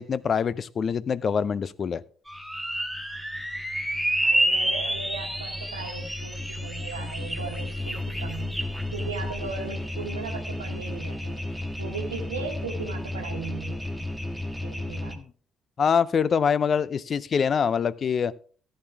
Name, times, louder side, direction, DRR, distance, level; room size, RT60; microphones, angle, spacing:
voice 1, 0.0-2.0 15.1-15.2 15.8-18.3, left 6 dB, 45° left, 20 dB, 0.5 m, -24 dB
sound 1, 2.3-15.1, equal, 5° left, 1.8 m, -30 dB
voice 2, 4.1-8.6 8.9-11.5 11.8-14.1 14.6-15.2, right 5 dB, 90° right, 4 dB, 1.3 m, -37 dB
14.0 x 8.9 x 3.5 m, 0.43 s
hypercardioid pair, 50°, 0 cm